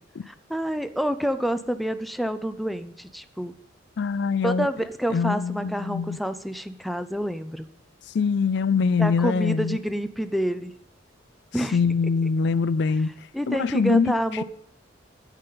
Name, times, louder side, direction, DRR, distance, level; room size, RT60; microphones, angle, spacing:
voice 1, 0.3-3.5 4.4-7.7 9.0-10.7 11.5-11.8 13.3-14.4, equal, ahead, 0.5 m, -28 dB
voice 2, 4.0-4.7 5.1-6.2 8.1-9.8 11.7-13.1 13.5-14.1, left 5 dB, 60° left, 0.4 m, -23 dB
8.9 x 8.3 x 5.7 m
head